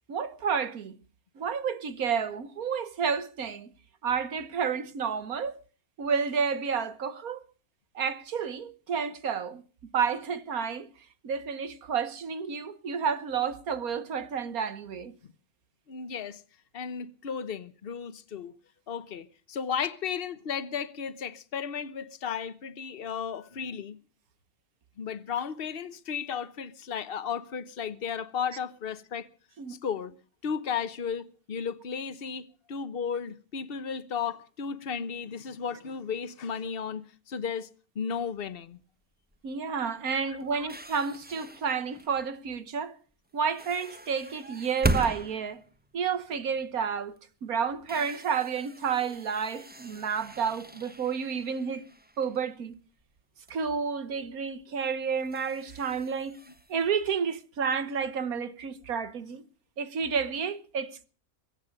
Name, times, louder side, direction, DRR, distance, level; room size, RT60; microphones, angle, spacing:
voice 1, 0.1-1.0 1.3-3.7 4.0-5.6 6.0-7.4 7.9-9.6 9.9-10.9 11.2-15.1 29.6-29.8 39.4-43.0 43.3-45.6 45.9-47.1 47.4-51.9 52.2-52.7 53.5-56.4 56.7-59.4 59.8-61.1, right 6 dB, 75° right, 1.7 m, -30 dB
voice 2, 15.9-16.4 16.7-18.6 18.9-24.0 25.0-29.3 29.7-30.2 30.4-37.7 37.9-38.8 40.2-40.3 40.6-40.7, left 7 dB, 45° left, 1.1 m, -34 dB
sound 1, 38.3-38.7 39.3-39.5 39.8-42.4 43.4-46.8 47.2-47.3 47.7-53.2 53.5-53.6 54.5-54.6 55.0-56.9, right 2 dB, 5° right, 1.0 m, -38 dB
22.5 x 9.0 x 6.5 m
omnidirectional pair, 1.5 m